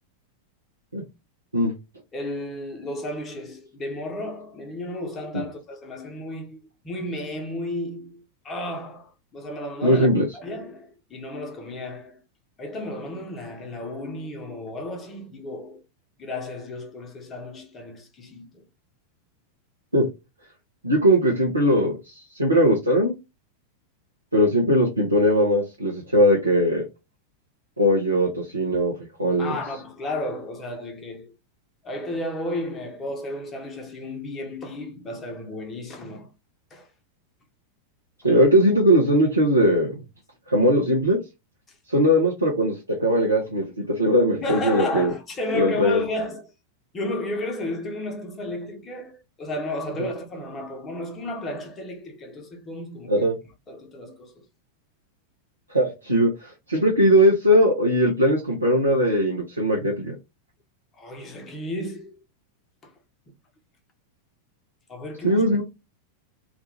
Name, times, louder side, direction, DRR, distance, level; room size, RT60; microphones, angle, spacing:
voice 1, 2.1-10.1 10.3-12.2 12.6-15.8 16.2-18.6 29.4-31.3 31.8-36.3 36.7-36.9 44.4-46.5 46.9-53.3 53.7-54.5 60.9-62.2 62.8-62.9 64.9-65.5, left 2 dB, 25° left, 0.8 m, -33 dB
voice 2, 9.8-10.2 19.9-20.1 20.8-23.1 24.3-26.8 27.8-28.9 29.2-29.6 38.2-40.0 40.5-41.2 41.9-45.1 45.5-46.0 53.1-53.4 55.7-60.1 65.2-65.6, equal, 85° right, 0.7 m, -20 dB
2.5 x 2.3 x 3.1 m
figure-of-eight pair, 90°, 0 cm